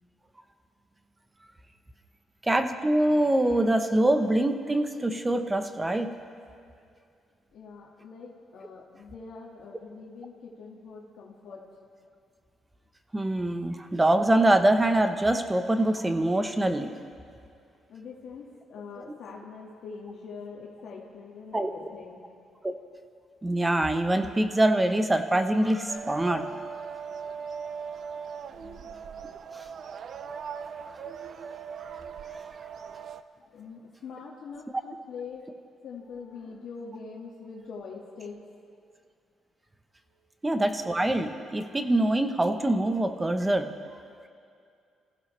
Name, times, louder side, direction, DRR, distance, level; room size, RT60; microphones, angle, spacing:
voice 1, 2.4-6.1 13.1-16.9 21.5-21.7 22.6-22.7 23.4-26.5 29.5-29.6 40.4-43.7, right 1 dB, 15° right, 7 dB, 1.1 m, -24 dB
voice 2, 7.5-11.6 17.9-22.2 28.6-29.0 33.5-35.4 35.8-38.9 40.1-40.4, left 5 dB, 70° left, -3 dB, 1.9 m, -43 dB
sound 1, 25.9-33.2, right 6 dB, 60° right, 0.6 m, -39 dB
27.5 x 15.5 x 3.4 m, 2.3 s
cardioid pair, 90°, 0 cm